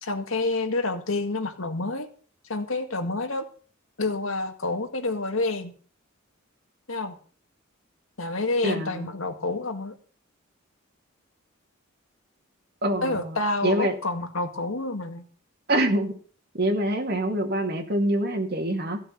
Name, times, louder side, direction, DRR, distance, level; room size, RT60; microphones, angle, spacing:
voice 1, 0.0-2.1 2.5-3.5 4.0-5.7 6.9-7.2 8.2-10.0 13.0-15.2, left 2 dB, 85° left, 6 dB, 2.0 m, -28 dB
voice 2, 8.6-9.1 12.8-13.4 13.6-14.0 15.7-16.1 16.5-19.0, right 1 dB, 50° right, 5 dB, 2.3 m, -25 dB
15.5 x 6.6 x 7.9 m, 0.42 s
head